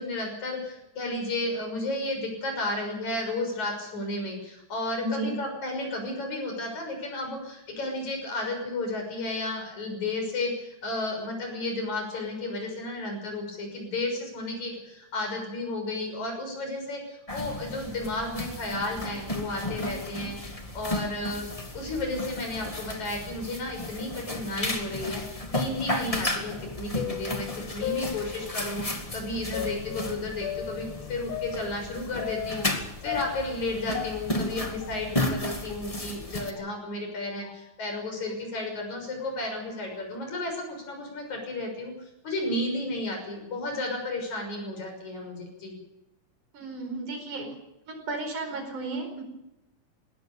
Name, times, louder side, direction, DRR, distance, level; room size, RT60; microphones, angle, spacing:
voice 1, 0.0-21.5 21.7-41.9 42.2-45.8, left 2 dB, 70° left, 3 dB, 7.7 m, -33 dB
voice 2, 5.0-5.3 46.5-47.5 47.9-49.2, right 2 dB, 85° right, 4 dB, 6.2 m, -33 dB
sound 1, 17.3-36.5, left 1 dB, 15° left, 1.5 m, -34 dB
sound 2, 26.6-28.8 29.5-32.8 33.1-35.4 35.7-35.8 36.6-36.7 37.4-37.6 38.3-38.4 39.2-39.5, left 10 dB, 85° left, 2.6 m, -37 dB
21.0 x 18.0 x 7.0 m, 0.91 s
omnidirectional pair, 3.5 m